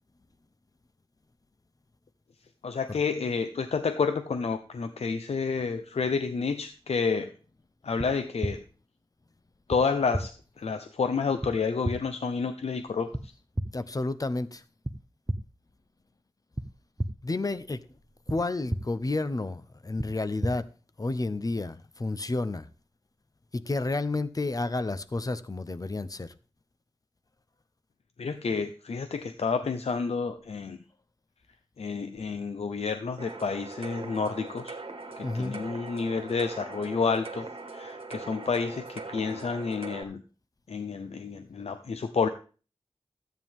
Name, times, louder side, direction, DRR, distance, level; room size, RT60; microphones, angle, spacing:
voice 1, 2.6-7.3 7.8-8.6 9.7-10.3 10.6-13.1 28.2-30.8 31.8-34.8 35.2-40.2 40.7-42.3, left 5 dB, 85° left, 0.7 m, -29 dB
sound 1, 8.0-8.1 8.4-8.5 9.7-9.8 10.1-10.2 11.4-11.5 11.8-11.9 13.1-13.2 13.5-13.7 14.8-14.9 15.3-15.4 16.6-16.7 17.0-17.1 18.3-18.4 18.7-18.8 20.0-20.1 20.4-20.5, right 1 dB, 15° right, 1.0 m, -29 dB
voice 2, 13.7-14.6 17.2-17.8 18.3-20.7 21.0-22.7 23.5-26.3 35.2-35.6, left 2 dB, 35° left, 0.8 m, -31 dB
sound 2, 33.2-40.0, right 3 dB, 60° right, 1.7 m, -41 dB
13.5 x 9.1 x 3.7 m
wide cardioid pair, 65°, 10 cm